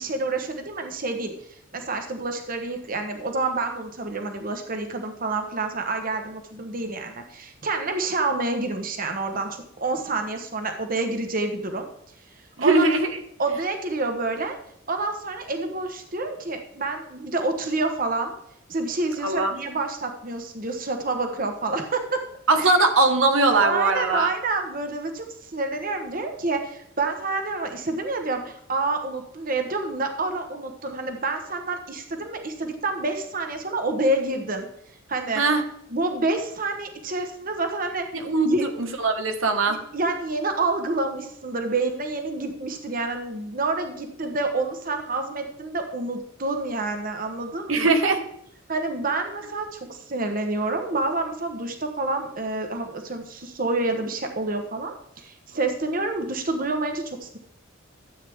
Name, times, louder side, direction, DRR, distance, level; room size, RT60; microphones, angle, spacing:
voice 1, 0.0-1.3 1.7-11.9 12.6-12.9 13.4-14.6 14.9-18.3 18.7-22.2 22.6-22.7 23.5-34.7 35.1-35.4 35.9-38.1 38.4-38.6 39.7-47.9 48.7-57.4, right 3 dB, 45° right, 5 dB, 1.2 m, -28 dB
voice 2, 12.6-13.1 19.2-19.5 22.5-24.3 35.3-35.6 38.1-39.8 47.7-48.2, right 3 dB, 85° right, 6 dB, 1.3 m, -21 dB
13.0 x 8.5 x 3.6 m, 0.73 s
head